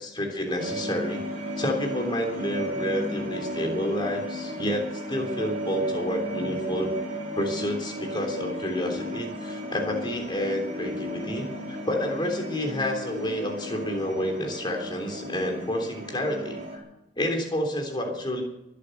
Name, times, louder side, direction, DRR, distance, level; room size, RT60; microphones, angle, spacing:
voice 1, 0.0-6.9 7.3-16.8 17.2-18.4, left 1 dB, 25° left, 2 dB, 3.5 m, -29 dB
sound 1, 0.6-16.8, equal, 35° right, 3.7 m, -34 dB
23.0 x 8.5 x 6.7 m, 0.90 s
head